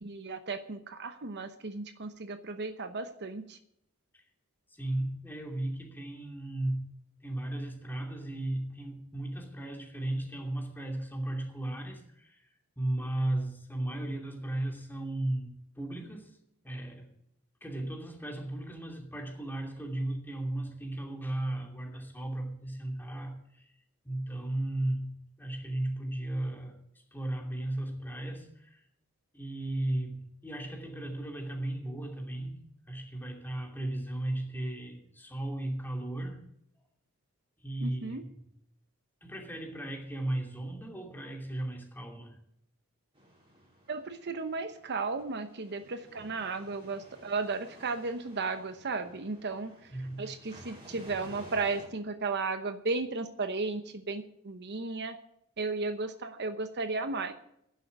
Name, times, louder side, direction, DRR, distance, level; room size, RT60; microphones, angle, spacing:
voice 1, 0.0-3.6 37.8-38.2 43.9-49.9 50.2-55.2 55.6-57.3, right 3 dB, 50° right, 9 dB, 0.9 m, -35 dB
voice 2, 4.7-6.9 7.2-12.5 12.8-16.4 16.6-17.1 17.6-23.7 24.0-26.8 27.1-28.8 29.3-36.4 37.6-38.5 39.2-42.4 49.9-50.3, right 1 dB, 10° left, 2 dB, 2.6 m, -35 dB
sound 1, 43.1-51.9, equal, 25° right, 4.6 m, -54 dB
11.0 x 7.8 x 9.1 m, 0.74 s
head